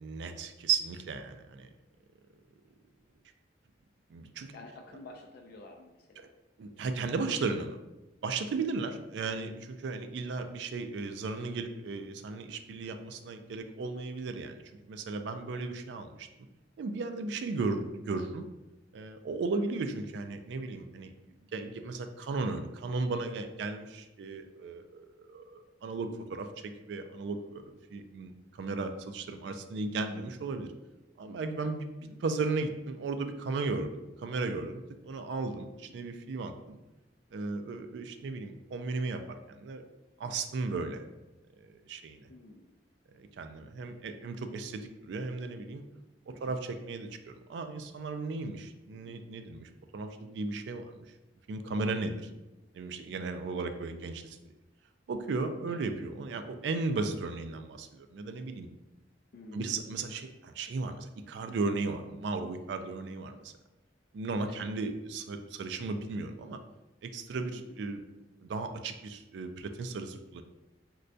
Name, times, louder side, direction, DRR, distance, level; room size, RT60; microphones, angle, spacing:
voice 1, 0.0-1.7 4.1-4.5 6.2-6.3 6.6-7.8 8.2-14.6 14.9-16.3 16.8-18.4 18.9-21.1 21.5-30.7 31.2-36.8 37.3-39.8 40.2-41.0 41.6-42.3 43.1-45.9 46.3-51.1 51.5-52.3 52.7-54.4 55.1-58.7 59.5-63.5 64.1-66.6 67.0-68.0 68.4-70.4, right 3 dB, 70° right, 7 dB, 0.3 m, -35 dB
voice 2, 4.5-6.3 8.8-8.9 10.4-10.5 16.2-16.3 32.0-32.2 35.9-36.0 42.3-42.7 46.3-46.6 48.9-49.2 52.3-52.4 55.7-55.9 59.3-59.8 64.5-64.7 67.5-67.8, left 2 dB, 55° left, 2 dB, 0.3 m, -50 dB
4.2 x 2.2 x 2.5 m, 1.0 s
head